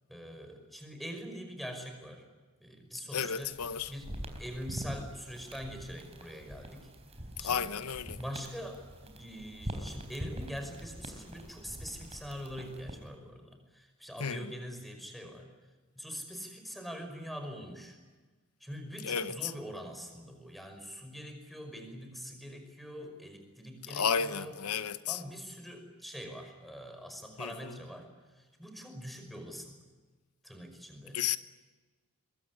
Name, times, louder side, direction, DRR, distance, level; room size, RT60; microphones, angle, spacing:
voice 1, 0.1-2.2 2.6-3.6 3.9-6.9 7.4-7.7 8.2-15.5 16.0-18.0 18.6-24.6 25.1-29.8 30.4-31.2, equal, ahead, 5.5 m, -44 dB
voice 2, 3.1-3.9 7.4-8.2 14.2-14.4 19.0-19.5 23.9-25.2 27.4-27.5 31.1-31.4, left 7 dB, 85° left, 0.9 m, -32 dB
sound 1, 3.3-13.1, equal, 30° right, 4.1 m, -44 dB
23.5 x 22.5 x 9.6 m
head